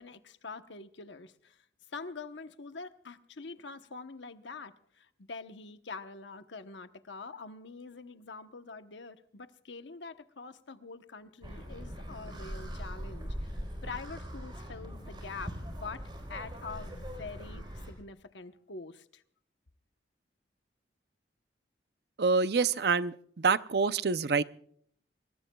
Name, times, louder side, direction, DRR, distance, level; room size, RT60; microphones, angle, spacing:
voice 1, 0.0-19.2, left 4 dB, 75° left, 9 dB, 1.0 m, -45 dB
sound 1, 11.4-17.9, equal, 25° right, 3.9 m, -41 dB
voice 2, 22.2-24.4, right 4 dB, 60° right, 14 dB, 0.6 m, -27 dB
25.5 x 21.0 x 2.3 m, 0.64 s
head